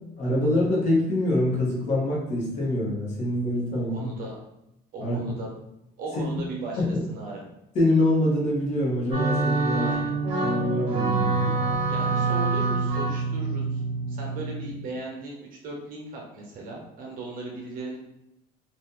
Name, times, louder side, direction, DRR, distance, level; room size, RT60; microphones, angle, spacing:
voice 1, 0.2-4.1 5.0-5.3 6.2-6.3 6.8-7.0 7.7-9.9 10.4-11.5, left 1 dB, 40° left, -4 dB, 1.1 m, -25 dB
voice 2, 3.7-4.4 4.9-5.7 6.0-7.4 9.8-10.1 11.9-13.8 14.1-18.0, right 2 dB, 50° right, -1 dB, 1.0 m, -37 dB
sound 1, 9.1-14.8, right 3 dB, 30° right, 1.1 m, -26 dB
2.8 x 2.5 x 3.7 m, 0.86 s
cardioid pair, 160°, 18 cm